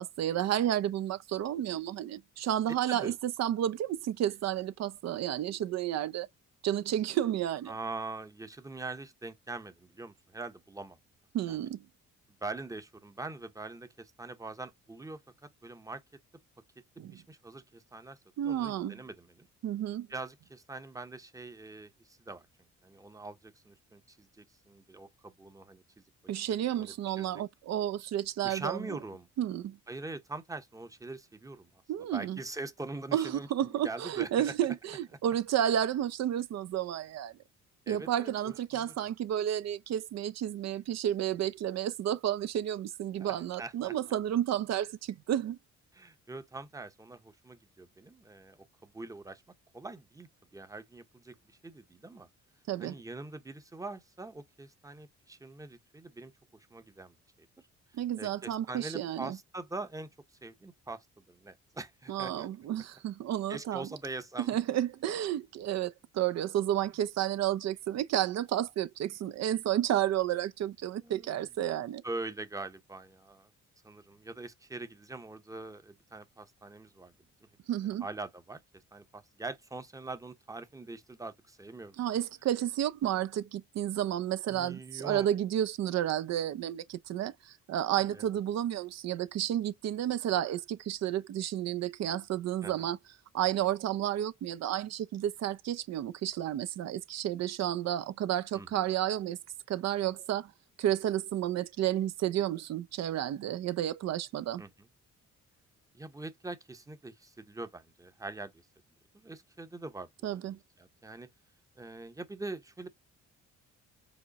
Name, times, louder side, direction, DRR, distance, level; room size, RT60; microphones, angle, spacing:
voice 1, 0.0-6.3 6.6-7.7 11.3-11.8 17.0-17.2 18.4-19.0 19.6-20.1 26.3-29.0 29.4-29.8 31.9-32.4 33.1-37.3 37.9-45.6 52.7-52.9 57.9-59.4 62.1-63.9 64.4-72.0 77.7-78.1 82.0-93.0 93.3-99.4 99.7-100.5 100.8-104.6 110.2-110.6, right 11 dB, 60° right, 0.5 m, -31 dB
voice 2, 7.7-11.0 11.5-11.6 12.4-15.2 15.6-16.0 17.1-18.2 18.4-19.5 20.1-22.5 22.8-25.8 26.5-27.4 28.4-29.3 29.9-31.7 32.1-34.5 37.9-39.1 43.2-43.9 45.9-49.4 49.7-52.3 52.8-56.3 56.7-57.2 58.2-60.1 60.4-62.5 63.5-64.5 71.0-71.3 72.0-73.5 73.8-77.1 77.8-78.6 78.9-81.9 84.5-85.3 88.1-88.3 92.6-92.9 98.5-98.8 104.6-104.7 105.9-108.6 109.1-110.4 110.8-111.3 111.8-112.9, right 2 dB, 10° right, 0.7 m, -43 dB
4.9 x 2.1 x 4.0 m
cardioid pair, 90°, 30 cm